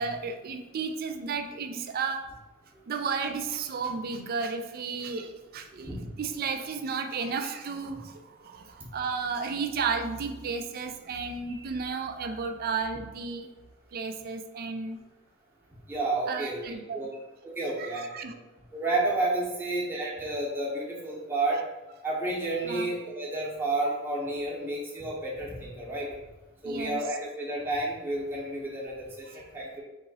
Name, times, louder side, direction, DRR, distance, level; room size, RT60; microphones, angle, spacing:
voice 1, 0.0-2.3 2.9-13.5 13.9-15.0 16.3-17.0 17.8-18.3 22.7-22.9 26.6-27.0, right 5 dB, 45° right, 6 dB, 0.4 m, -33 dB
voice 2, 15.9-17.1 17.4-18.3 18.7-21.6 22.0-26.1 26.6-29.8, right 2 dB, 10° right, -5 dB, 0.8 m, -31 dB
3.7 x 2.9 x 4.0 m, 1.1 s
head